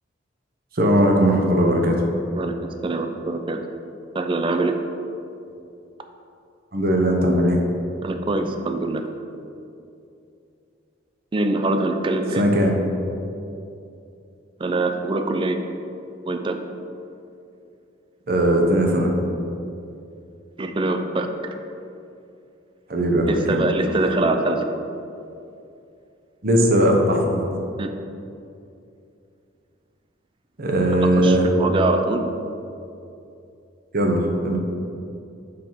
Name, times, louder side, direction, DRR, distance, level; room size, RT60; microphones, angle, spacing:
voice 1, 0.7-2.0 6.7-7.6 12.4-12.8 18.3-19.1 22.9-23.7 26.4-27.4 30.6-31.5 33.9-34.6, equal, 50° right, 1 dB, 0.8 m, -19 dB
voice 2, 2.3-3.6 4.1-4.8 8.0-9.0 11.3-12.4 14.6-15.6 16.3-16.6 20.6-21.5 23.3-24.7 27.8-27.9 31.2-32.3, right 2 dB, 25° right, 6 dB, 0.4 m, -24 dB
5.1 x 4.5 x 5.6 m, 2.6 s
head